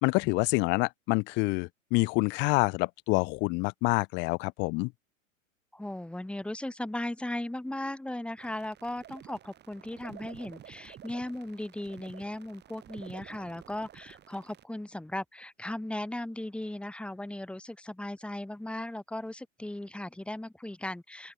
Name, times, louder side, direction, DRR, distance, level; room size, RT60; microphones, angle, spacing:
voice 1, 0.0-4.9, left 27 dB, 30° left, 0.6 m, -27 dB
voice 2, 5.7-21.3, left 1 dB, 5° left, 2.8 m, -37 dB
sound 1, 8.4-14.6, right 11 dB, 25° right, 3.5 m, -51 dB
open air
figure-of-eight pair, 100°, 39 cm